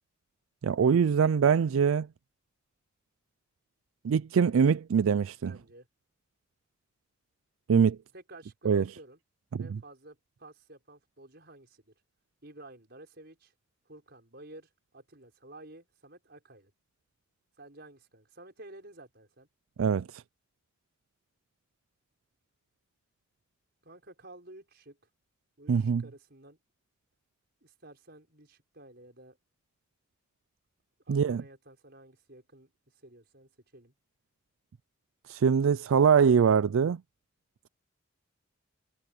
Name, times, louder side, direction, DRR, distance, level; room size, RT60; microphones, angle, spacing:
voice 1, 0.6-2.1 4.0-5.5 7.7-8.0 8.7-8.8 9.5-9.7 19.8-20.2 25.7-26.0 31.1-31.4 35.3-37.0, right 6 dB, 85° right, 0.4 m, -23 dB
voice 2, 5.4-5.9 8.1-9.2 9.6-11.9 12.4-13.5 13.9-16.7 17.6-19.5 23.8-25.0 25.6-26.6 27.6-29.4 31.0-33.9, right 1 dB, 55° right, 5.9 m, -52 dB
head